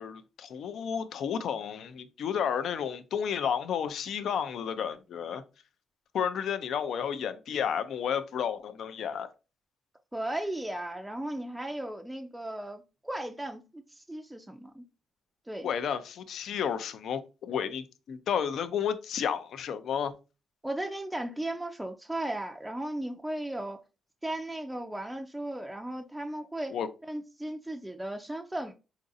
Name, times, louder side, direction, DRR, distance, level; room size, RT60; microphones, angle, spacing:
voice 1, 0.0-5.4 6.1-9.3 15.6-20.1 26.7-26.9, left 8 dB, 70° left, 0.4 m, -32 dB
voice 2, 10.1-14.8 15.5-15.7 20.6-23.8 24.2-26.8 27.1-28.7, right 1 dB, 5° right, 0.3 m, -36 dB
4.0 x 2.5 x 2.6 m
cardioid pair, 90°, 0 cm